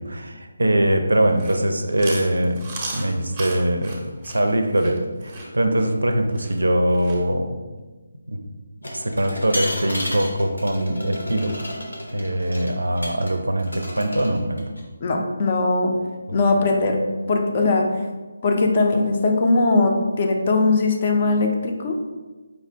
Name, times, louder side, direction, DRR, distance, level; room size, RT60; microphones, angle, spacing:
voice 1, 0.0-2.6 2.9-7.6 8.3-8.4 8.9-11.6 12.1-14.7, right 1 dB, 65° right, 6 dB, 0.4 m, -22 dB
Chewing mastication, 1.2-7.2, right 2 dB, 20° right, 0.6 m, -36 dB
sound 1, 8.8-13.3 13.6-14.8, left 1 dB, 80° left, 1.0 m, -32 dB
voice 2, 15.0-15.9 16.3-17.0 17.3-17.9 18.4-22.0, left 3 dB, 30° left, 2 dB, 0.5 m, -20 dB
5.0 x 2.5 x 3.4 m, 1.3 s
figure-of-eight pair, 150°, 0 cm